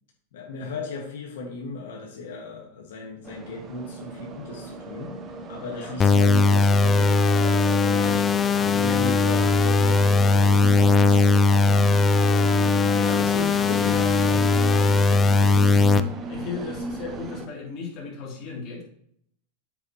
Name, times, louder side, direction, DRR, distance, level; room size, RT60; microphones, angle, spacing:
voice 1, 0.3-5.2 5.5-8.2 8.7-11.3 11.6-16.2, left 3 dB, 80° left, -1 dB, 1.7 m, -37 dB
sound 1, 3.2-17.5, right 3 dB, 25° right, 0.7 m, -37 dB
sound 2, 6.0-16.0, left 3 dB, 20° left, 0.4 m, -19 dB
voice 2, 7.9-9.2 13.0-13.2 16.3-18.8, left 5 dB, 40° left, -2 dB, 2.8 m, -36 dB
8.1 x 6.7 x 3.0 m, 0.68 s
supercardioid pair, 145°, 0 cm